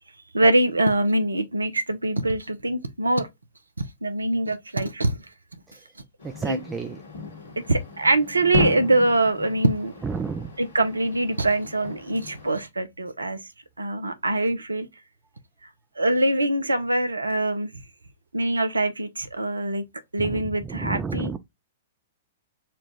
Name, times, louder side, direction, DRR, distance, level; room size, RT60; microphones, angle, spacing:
voice 1, 0.3-3.3 4.0-5.2 6.5-6.6 7.6-9.9 10.6-13.4 13.8-14.9 16.0-17.7 18.3-19.8 20.1-21.3, right 2 dB, 80° right, 0.7 m, -23 dB
sound 1, 6.2-12.6, left 4 dB, 60° left, 1.6 m, -34 dB
voice 2, 6.2-7.0 10.0-10.5 20.2-20.4 20.7-21.4, right 5 dB, 15° right, 0.4 m, -30 dB
4.2 x 2.3 x 3.0 m
figure-of-eight pair, 110°, 0 cm